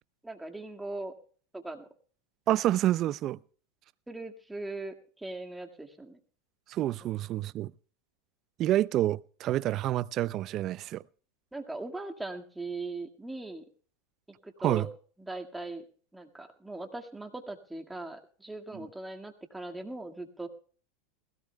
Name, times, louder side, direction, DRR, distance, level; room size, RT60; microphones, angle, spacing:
voice 1, 0.2-1.1 1.5-1.9 4.1-6.2 11.5-13.7 14.4-14.9 15.2-15.8 16.1-20.5, right 2 dB, 5° right, 1.9 m, -40 dB
voice 2, 2.5-3.4 6.7-7.7 8.6-11.0 14.6-14.9, right 14 dB, 45° right, 0.5 m, -28 dB
20.5 x 16.5 x 2.3 m
hypercardioid pair, 110°, 0 cm